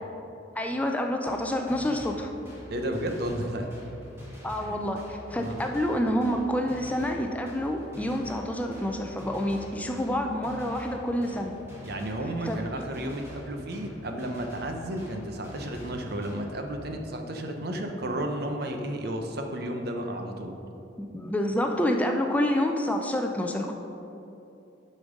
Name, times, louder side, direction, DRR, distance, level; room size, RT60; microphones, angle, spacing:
voice 1, 0.5-2.3 4.4-11.5 12.5-12.6 21.0-23.7, left 1 dB, 10° left, 3 dB, 0.5 m, -28 dB
sound 1, 1.2-16.5, equal, 15° right, 1.8 m, -45 dB
voice 2, 2.7-3.7 4.6-4.8 5.3-5.6 11.8-20.5, right 1 dB, 60° right, 4 dB, 0.9 m, -32 dB
10.5 x 5.3 x 5.1 m, 2.9 s
head